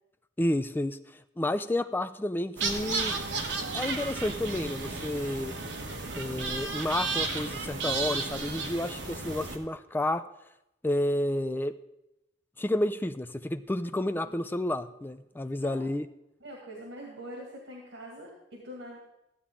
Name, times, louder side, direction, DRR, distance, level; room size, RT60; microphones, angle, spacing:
voice 1, 0.4-1.0 1.4-3.2 3.7-5.6 6.2-10.3 10.8-11.7 12.6-16.1, left 1 dB, 10° left, 11 dB, 0.4 m, -30 dB
sound 1, 2.6-9.6, right 4 dB, 70° right, 1.3 m, -33 dB
voice 2, 14.1-14.5 15.6-15.8 16.4-19.0, equal, 90° right, -1 dB, 2.2 m, -44 dB
14.0 x 8.5 x 3.7 m, 0.88 s
head